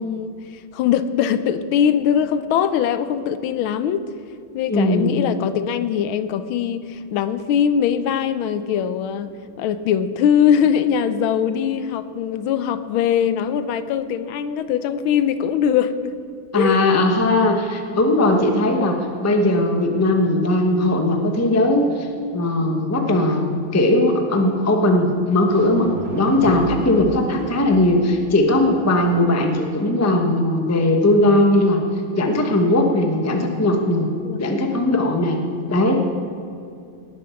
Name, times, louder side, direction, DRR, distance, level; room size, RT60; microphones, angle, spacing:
voice 1, 0.0-4.0 4.5-9.3 9.6-16.2 16.5-16.8 34.2-34.7, left 8 dB, 80° left, 12 dB, 1.4 m, -21 dB
voice 2, 4.7-5.1 16.5-22.1 22.3-31.8 32.1-34.1 34.4-35.4 35.7-36.1, left 1 dB, 15° left, 3 dB, 0.5 m, -18 dB
sound 1, 25.1-25.2 25.4-29.2, right 3 dB, 70° right, 2.0 m, -34 dB
18.5 x 7.3 x 5.8 m, 2.5 s
omnidirectional pair, 2.3 m